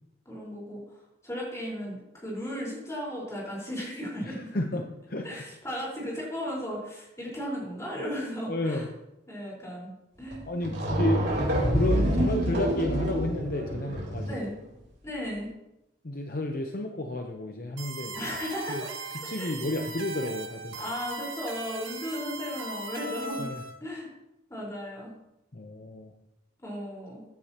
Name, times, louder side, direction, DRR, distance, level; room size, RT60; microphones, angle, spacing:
voice 1, 0.2-4.6 5.2-8.9 9.3-10.4 10.9-11.1 14.2-14.6 15.0-15.5 18.1-18.9 19.2-19.6 20.8-23.5 23.8-24.1 24.5-25.1 26.6-27.2, equal, 15° left, -5 dB, 4.5 m, -36 dB
voice 2, 4.3-5.4 8.5-8.9 10.5-11.2 11.7-14.5 16.0-18.2 18.7-18.8 19.1-20.9 23.4-23.6 25.5-26.1, left 1 dB, 50° left, 3 dB, 0.8 m, -31 dB
sound 1, 10.3-10.4 10.6-14.4, equal, 65° right, 3.7 m, -27 dB
sound 2, 17.8-23.7, right 3 dB, 90° right, 1.7 m, -39 dB
15.5 x 9.8 x 2.9 m, 0.90 s
head